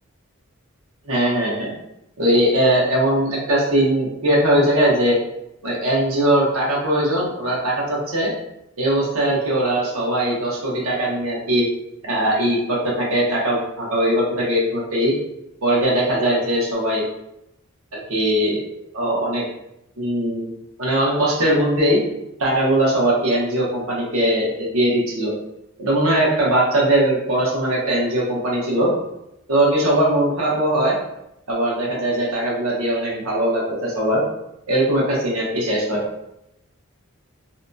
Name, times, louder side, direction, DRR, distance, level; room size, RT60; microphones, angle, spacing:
voice 1, 1.1-1.7 2.2-5.2 5.6-8.3 8.8-11.7 12.0-15.1 15.6-17.0 18.1-18.7 18.9-19.4 20.0-20.5 20.8-22.0 22.4-25.3 25.8-28.9 29.5-31.0 31.5-34.2 34.7-36.0, right 1 dB, 85° right, -4 dB, 0.9 m, -20 dB
2.8 x 2.5 x 2.2 m, 0.84 s
head